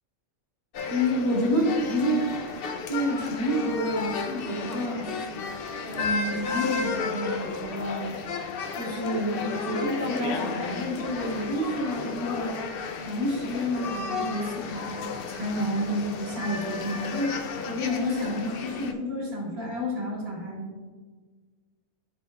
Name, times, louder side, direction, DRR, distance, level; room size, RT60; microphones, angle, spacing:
sound 1, 0.7-18.9, left 4 dB, 65° left, 0.6 m, -33 dB
voice 1, 0.9-2.3 2.9-5.2 5.9-8.1 8.7-12.6 12.9-20.9, equal, 30° right, -6 dB, 1.7 m, -29 dB
12.5 x 4.4 x 2.3 m, 1.4 s
omnidirectional pair, 1.4 m